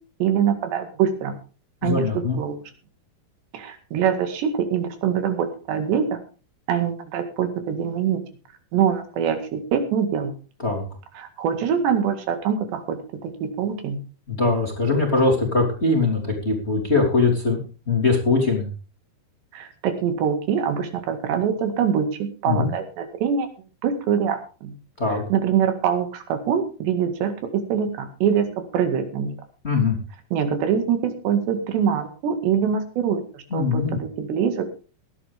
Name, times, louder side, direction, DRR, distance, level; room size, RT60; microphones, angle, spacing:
voice 1, 0.2-1.3 1.8-2.1 2.4-2.6 3.5-6.2 6.7-8.2 8.7-10.3 11.2-14.0 19.5-23.5 23.8-24.8 25.3-28.5 28.7-29.4 30.3-34.7, right 8 dB, 85° right, 7 dB, 4.2 m, -24 dB
voice 2, 1.8-2.4 10.6-10.8 14.3-17.6 17.9-18.7 22.4-22.7 25.0-25.2 29.6-30.0 33.5-34.0, left 3 dB, 15° left, 1 dB, 2.8 m, -21 dB
18.0 x 12.0 x 3.5 m, 0.35 s
omnidirectional pair, 4.9 m